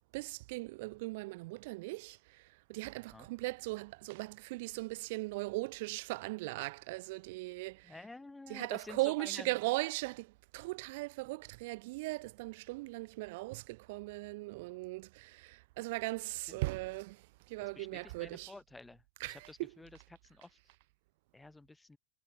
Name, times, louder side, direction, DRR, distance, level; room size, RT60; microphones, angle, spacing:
voice 1, 0.1-2.4 2.7-8.1 8.5-17.2 17.5-18.5 19.2-19.8, right 22 dB, 50° right, 0.4 m, -38 dB
voice 2, 7.8-9.6 16.5-16.6 17.6-20.6 21.3-22.0, left 2 dB, 5° left, 1.0 m, -51 dB
figure-of-eight pair, 90°, 0 cm